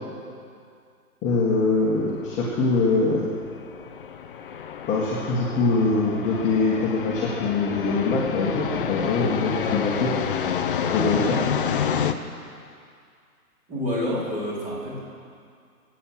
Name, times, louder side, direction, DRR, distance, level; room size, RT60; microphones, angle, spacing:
voice 1, 1.2-3.2 4.9-10.1 10.9-11.4, left 3 dB, 15° left, -7 dB, 2.0 m, -23 dB
sound 1, 1.5-12.1, left 7 dB, 35° left, 0.8 m, -29 dB
voice 2, 13.7-15.0, left 1 dB, 15° right, -7 dB, 4.6 m, -28 dB
22.5 x 9.2 x 6.3 m, 2.3 s
figure-of-eight pair, 130°, 46 cm